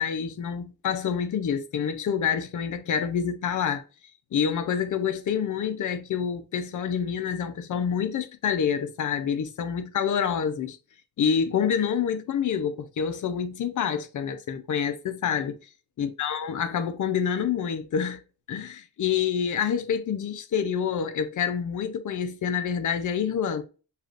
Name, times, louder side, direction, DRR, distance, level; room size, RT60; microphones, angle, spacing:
voice 1, 0.0-3.8 4.3-10.8 11.2-15.6 16.0-18.2 18.5-23.6, left 7 dB, 50° left, 0.5 m, -27 dB
6.5 x 2.4 x 2.4 m
wide cardioid pair, 170°, 39 cm